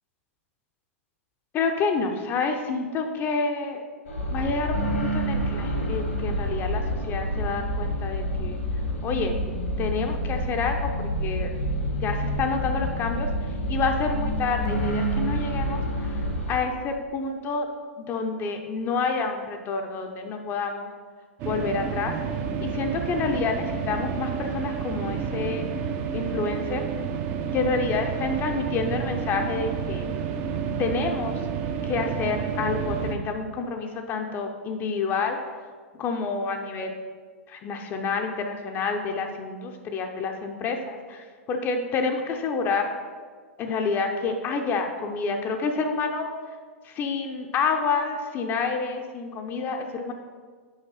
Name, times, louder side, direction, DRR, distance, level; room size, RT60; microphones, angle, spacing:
voice 1, 1.5-3.8 4.3-8.6 9.0-9.3 9.8-11.6 11.9-13.3 13.7-15.8 16.5-17.7 18.0-20.9 21.4-22.1 22.6-25.7 26.1-26.8 27.5-30.1 30.8-31.4 31.8-35.4 36.0-36.9 37.5-42.9 43.6-46.3 46.8-50.1, left 4 dB, 30° left, 4 dB, 0.6 m, -28 dB
sound 1, 4.1-16.6, equal, 75° left, 1.5 m, -28 dB
sound 2, 21.4-33.1, right 6 dB, 35° right, 0.6 m, -30 dB
7.0 x 5.2 x 4.0 m, 1.5 s
figure-of-eight pair, 100°, 7 cm